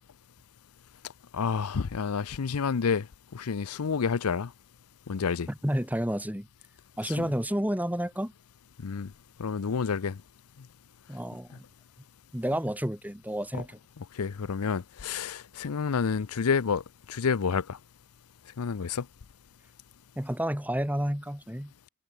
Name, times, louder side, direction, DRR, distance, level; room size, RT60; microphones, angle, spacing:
voice 1, 1.3-3.1 3.3-4.5 5.1-5.5 7.0-7.3 8.8-9.1 9.4-10.2 13.5-13.6 14.0-16.8 17.1-17.8 18.6-19.1, left 5 dB, 90° left, 0.6 m, -29 dB
voice 2, 5.5-6.5 7.0-8.3 11.1-11.6 12.3-13.8 20.2-21.7, equal, 5° right, 2.7 m, -30 dB
head